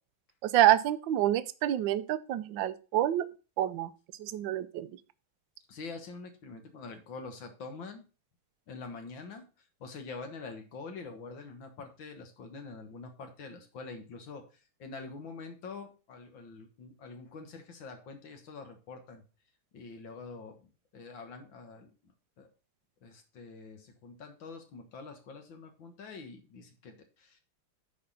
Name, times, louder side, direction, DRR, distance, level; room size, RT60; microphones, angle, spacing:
voice 1, 0.4-3.3 3.6-3.9 4.2-4.9, right 12 dB, 70° right, 14 dB, 1.2 m, -27 dB
voice 2, 5.7-8.0 8.7-9.5 9.8-19.2 19.7-20.6 20.9-21.9 22.4-22.5 23.0-27.4, left 4 dB, 60° left, 6 dB, 2.1 m, -45 dB
9.6 x 4.3 x 5.5 m, 0.33 s
omnidirectional pair, 2.4 m